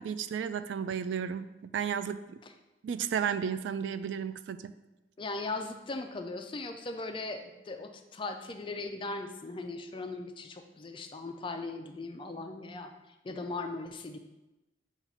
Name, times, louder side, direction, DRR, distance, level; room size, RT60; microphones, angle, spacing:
voice 1, 0.0-1.5 1.7-2.4 2.8-4.7, right 7 dB, 80° right, 12 dB, 0.3 m, -33 dB
voice 2, 5.2-12.9 13.2-14.2, left 3 dB, 30° left, 6 dB, 0.4 m, -38 dB
7.2 x 2.4 x 5.4 m, 1.0 s
head